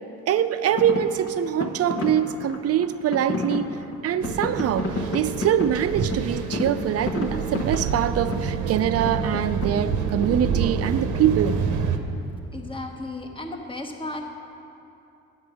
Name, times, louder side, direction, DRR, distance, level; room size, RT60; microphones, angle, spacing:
voice 1, 0.3-3.7 4.0-11.6, right 9 dB, 55° right, 12 dB, 0.5 m, -24 dB
sound 1, 0.7-10.7, left 2 dB, 50° left, 0.9 m, -32 dB
sound 2, 4.2-12.0, right 6 dB, 80° right, 0.8 m, -28 dB
voice 2, 12.5-14.2, left 2 dB, 15° left, 3 dB, 1.1 m, -34 dB
10.5 x 8.0 x 4.9 m, 2.7 s
cardioid pair, 90°, 30 cm